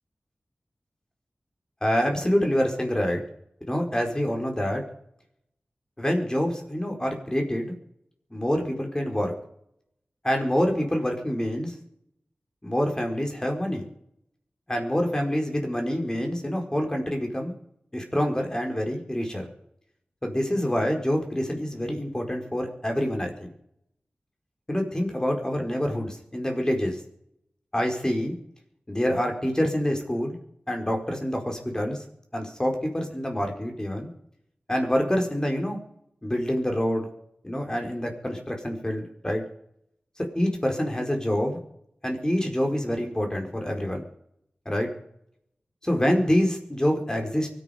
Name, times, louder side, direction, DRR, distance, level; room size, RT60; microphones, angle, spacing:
voice 1, 1.8-3.2 3.7-4.8 6.0-7.7 8.3-9.3 10.2-11.7 12.6-13.9 14.7-17.5 17.9-19.5 20.2-23.5 24.7-27.0 27.7-28.3 28.9-30.3 30.7-32.0 32.3-34.1 34.7-35.8 36.2-37.1 37.4-39.4 40.3-41.6 42.0-44.0 44.6-44.9 45.8-47.5, equal, 20° left, 2 dB, 4.6 m, -26 dB
24.0 x 10.0 x 5.1 m, 0.73 s
wide cardioid pair, 55°, 4 cm